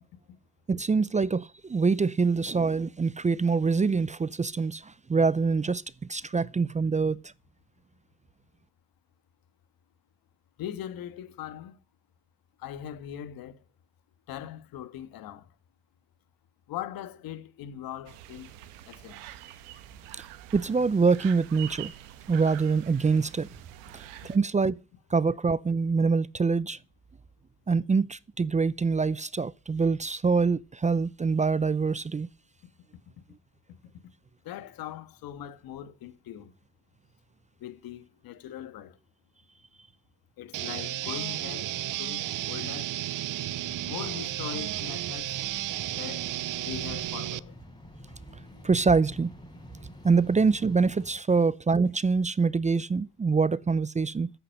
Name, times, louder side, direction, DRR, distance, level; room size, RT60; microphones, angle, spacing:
voice 1, 0.7-5.8 6.1-7.2 20.5-21.9 22.3-23.5 23.9-24.8 25.1-26.8 27.7-32.3 48.6-49.3 50.0-54.3, right 4 dB, 20° right, 0.6 m, -25 dB
voice 2, 10.6-11.8 12.6-13.6 14.3-15.5 16.7-18.5 18.9-19.3 34.4-36.5 37.6-39.0 40.4-42.9 43.8-45.4 45.9-46.3 46.6-47.5, left 11 dB, 70° left, 1.7 m, -40 dB
sound 1, 18.1-24.4, right 12 dB, 90° right, 1.3 m, -46 dB
sound 2, 40.5-47.4, right 14 dB, 60° right, 0.7 m, -33 dB
sound 3, 43.5-51.1, equal, 10° left, 5.4 m, -48 dB
11.0 x 8.4 x 7.8 m
supercardioid pair, 60°, 36 cm